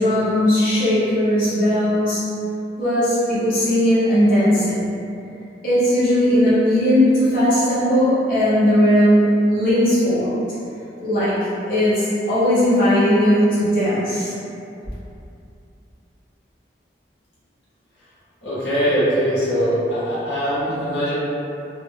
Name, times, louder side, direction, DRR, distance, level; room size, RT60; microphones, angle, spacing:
voice 1, 0.0-2.3 2.8-4.9 5.6-10.3 11.0-11.4 11.7-14.3, equal, 50° left, -13 dB, 0.7 m, -18 dB
voice 2, 18.4-21.1, equal, 80° left, -10 dB, 0.8 m, -21 dB
2.3 x 2.0 x 3.2 m, 2.6 s
head